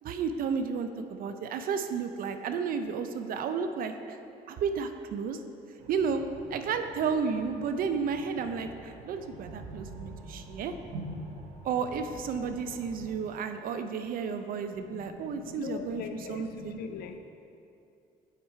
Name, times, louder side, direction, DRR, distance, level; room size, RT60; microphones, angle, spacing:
voice 1, 0.0-4.2 4.5-5.4 5.9-6.2 6.5-10.7 11.6-16.0 16.3-16.8, right 6 dB, 60° right, 8 dB, 0.4 m, -32 dB
sound 1, 5.8-13.1, right 1 dB, 80° right, 1.0 m, -45 dB
voice 2, 14.7-17.2, left 6 dB, 65° left, 7 dB, 0.4 m, -41 dB
7.3 x 4.7 x 4.5 m, 2.7 s
cardioid pair, 110°, 17 cm